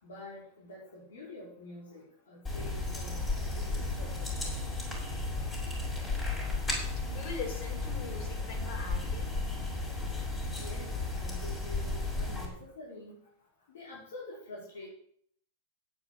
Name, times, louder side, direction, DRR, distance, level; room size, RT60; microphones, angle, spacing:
voice 1, 0.0-4.7 10.6-13.2 13.7-14.9, left 2 dB, 85° left, -5 dB, 5.1 m, -47 dB
sound 1, 2.4-12.4, left 3 dB, 20° left, 6.3 m, -34 dB
voice 2, 7.0-9.3, left 4 dB, 60° left, 4 dB, 4.9 m, -41 dB
9.6 x 8.4 x 8.1 m, 0.64 s
hypercardioid pair, 125°, 0 cm